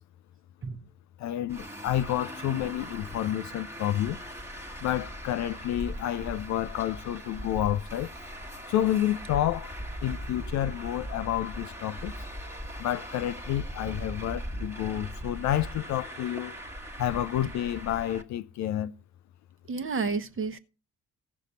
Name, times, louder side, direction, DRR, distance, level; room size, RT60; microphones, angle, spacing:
voice 1, 1.2-4.2 4.8-8.1 8.7-12.1 12.8-16.6 17.0-18.9, left 12 dB, 40° left, 0.5 m, -29 dB
Traffic noise roadway noise, 1.5-18.2, equal, 5° right, 1.4 m, -40 dB
voice 2, 19.7-20.6, right 4 dB, 30° right, 1.1 m, -30 dB
16.0 x 6.5 x 4.1 m
figure-of-eight pair, 50°, 43 cm